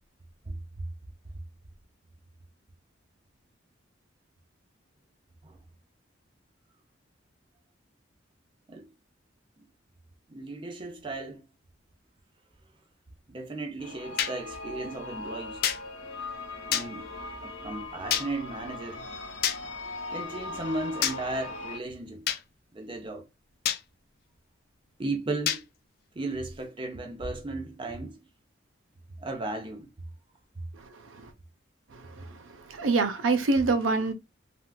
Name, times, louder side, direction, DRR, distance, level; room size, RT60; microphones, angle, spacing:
voice 1, 10.3-11.4 13.3-15.6 16.7-17.1 17.4-19.1 20.0-22.3 22.7-23.3 25.0-25.6 26.1-28.2 29.2-29.9, right 2 dB, 25° right, 0.5 m, -35 dB
sound 1, 13.8-21.8, left 2 dB, 75° left, 0.9 m, -39 dB
sound 2, 14.2-14.3 15.6-15.8 16.7-16.9 18.1-18.3 19.4-19.6 21.0-21.2 22.3-22.4 23.6-23.8 25.5-25.6, left 10 dB, 50° left, 0.4 m, -26 dB
voice 2, 32.7-34.1, right 3 dB, 75° right, 0.6 m, -24 dB
3.4 x 2.4 x 2.2 m
head